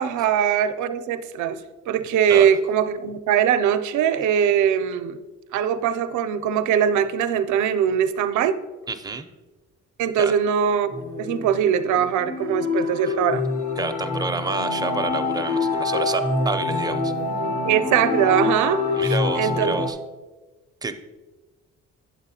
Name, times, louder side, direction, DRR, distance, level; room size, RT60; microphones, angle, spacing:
voice 1, 0.0-1.6 1.9-5.2 5.5-8.6 10.0-10.9 11.2-13.5 17.6-19.8, right 8 dB, 75° right, 11 dB, 0.5 m, -21 dB
voice 2, 8.9-9.3 10.2-10.3 13.1-13.2 13.8-17.1 19.0-20.0 20.8-20.9, right 3 dB, 15° right, 7 dB, 0.5 m, -29 dB
sound 1, 10.9-19.9, left 3 dB, 75° left, 1.2 m, -26 dB
8.7 x 7.5 x 2.7 m, 1.2 s
cardioid pair, 90°, 30 cm